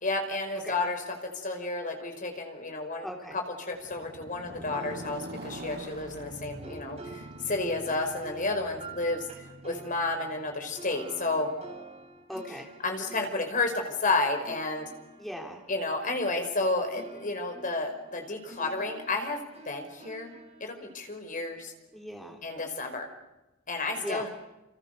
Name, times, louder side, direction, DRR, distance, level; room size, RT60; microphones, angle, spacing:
voice 1, 0.0-1.0 1.3-3.1 3.3-11.5 12.8-14.9 15.7-20.3 20.6-21.7 22.4-23.1 23.7-24.3, left 2 dB, 40° left, 5 dB, 5.2 m, -31 dB
voice 2, 3.0-3.4 12.3-12.7 15.2-15.6 21.9-22.4 24.0-24.3, equal, ahead, 1 dB, 3.5 m, -38 dB
Motorcycle, 3.7-11.8, right 1 dB, 55° right, 6.2 m, -45 dB
sound 1, 4.7-16.6 16.9-22.2, right 2 dB, 35° right, 5.1 m, -49 dB
29.5 x 29.5 x 6.8 m, 1.0 s
head